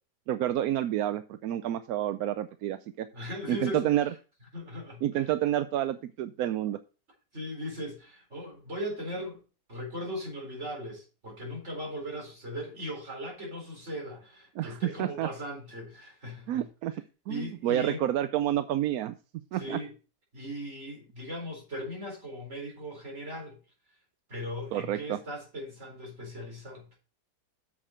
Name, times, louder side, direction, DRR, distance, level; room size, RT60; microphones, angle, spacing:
voice 1, 0.3-3.1 3.5-4.1 5.0-6.8 14.6-15.3 16.5-16.9 17.3-19.2 19.5-19.8 24.7-25.2, right 12 dB, 70° right, 0.9 m, -29 dB
voice 2, 3.1-3.9 4.5-5.3 7.3-9.4 9.7-16.6 17.3-18.0 19.5-19.9 20.3-23.6 24.3-26.9, equal, 40° right, 4.4 m, -38 dB
8.7 x 7.4 x 4.3 m
omnidirectional pair, 1.8 m